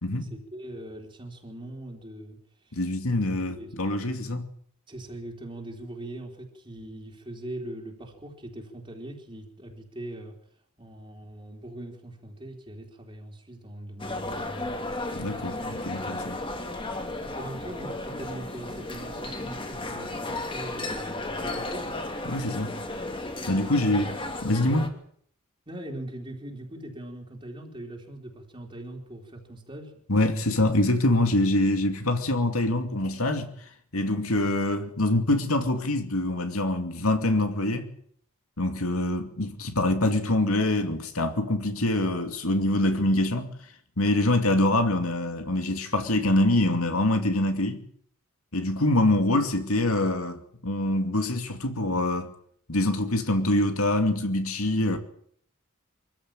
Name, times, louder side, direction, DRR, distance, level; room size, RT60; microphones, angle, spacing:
voice 1, 0.1-2.8 3.3-3.8 4.1-4.4 4.9-10.4 10.8-14.8 17.0-22.2 23.4-23.7 25.7-30.0, right 1 dB, 25° right, 3.5 m, -41 dB
voice 2, 2.7-4.5 15.2-16.4 22.3-22.8 23.5-24.9 30.1-37.9 38.6-43.5 44.0-47.8 48.5-52.3 52.7-55.0, left 1 dB, 80° left, 2.5 m, -25 dB
sound 1, 14.0-24.9, left 2 dB, 25° left, 2.8 m, -34 dB
24.5 x 15.0 x 8.9 m
head